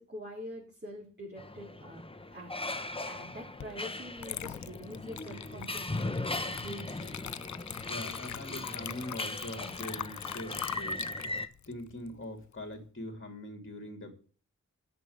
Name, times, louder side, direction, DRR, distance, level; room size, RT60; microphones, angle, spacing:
voice 1, 0.0-2.0 2.3-2.5 2.8-7.2, equal, 35° right, -5 dB, 4.3 m, -45 dB
sound 1, 1.4-11.5, left 2 dB, 15° left, 0.9 m, -39 dB
Water / Liquid, 3.6-3.8 4.2-12.7, left 9 dB, 65° left, 0.5 m, -42 dB
voice 2, 7.9-11.1 11.7-14.1, left 1 dB, 40° left, 3 dB, 2.8 m, -42 dB
8.1 x 6.9 x 8.0 m, 0.41 s
cardioid pair, 50°, 31 cm